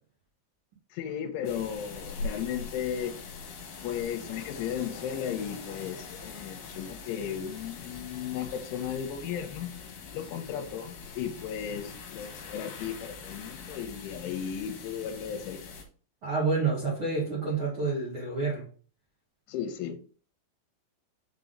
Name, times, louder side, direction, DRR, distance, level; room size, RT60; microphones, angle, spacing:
voice 1, 0.9-3.1 3.8-9.7 10.1-15.6 19.5-20.0, left 8 dB, 80° left, 6 dB, 3.0 m, -35 dB
sound 1, 1.4-15.8, left 4 dB, 65° left, 3.0 m, -43 dB
voice 2, 16.2-18.6, right 4 dB, 75° right, -6 dB, 1.2 m, -28 dB
7.3 x 4.1 x 3.8 m, 0.41 s
omnidirectional pair, 5.7 m